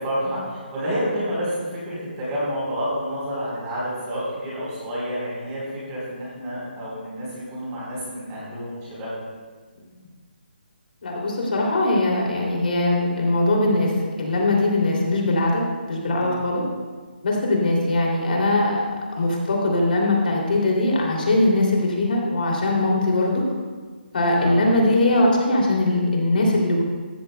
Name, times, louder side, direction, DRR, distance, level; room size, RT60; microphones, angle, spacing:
voice 1, 0.0-5.6 5.9-9.1 16.0-16.4 24.4-24.7, equal, 15° right, -6 dB, 4.1 m, -29 dB
voice 2, 11.0-16.6 17.2-18.9 19.2-23.4 24.1-26.8, left 2 dB, 55° left, -1 dB, 2.8 m, -21 dB
15.0 x 14.0 x 2.2 m, 1.4 s
hypercardioid pair, 170°, 6 cm